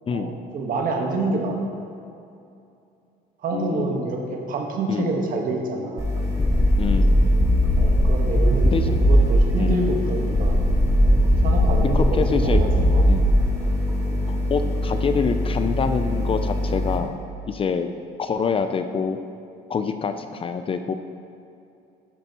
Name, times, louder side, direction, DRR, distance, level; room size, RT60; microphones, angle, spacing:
voice 1, 0.1-1.7 3.4-6.1 7.8-8.7 9.0-10.6 11.4-13.0, right 2 dB, 55° right, 1 dB, 1.4 m, -27 dB
voice 2, 3.5-4.1 4.9-5.1 6.8-7.2 8.6-9.0 9.6-9.8 11.9-12.6 13.1-13.3 14.3-17.1 17.5-17.9 18.2-19.2 19.7-20.9, left 6 dB, 35° left, 8 dB, 0.5 m, -26 dB
Fridge buzz (loop), 6.0-17.0, left 1 dB, 20° right, 1.9 m, -25 dB
sound 1, 6.4-9.6 10.3-13.6, equal, 10° left, 1.4 m, -19 dB
11.5 x 9.0 x 3.0 m, 2.6 s
cardioid pair, 110°, 17 cm